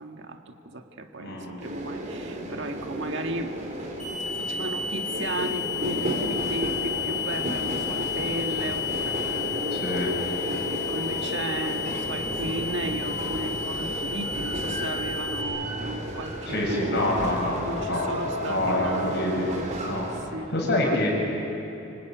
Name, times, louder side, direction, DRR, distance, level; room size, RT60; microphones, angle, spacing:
voice 1, 0.0-3.5 4.3-17.0 17.6-19.4 20.3-21.0, right 2 dB, 65° right, 4 dB, 1.8 m, -35 dB
voice 2, 1.2-1.6 9.7-10.1 16.5-18.1 18.5-19.5 19.9-20.1 20.5-21.1, left 1 dB, 60° left, -2 dB, 7.8 m, -26 dB
sound 1, 1.6-20.2, right 1 dB, 40° right, 4.4 m, -33 dB
sound 2, 4.0-15.4, left 8 dB, 40° left, 5.0 m, -32 dB
25.0 x 24.5 x 9.4 m, 2.9 s
head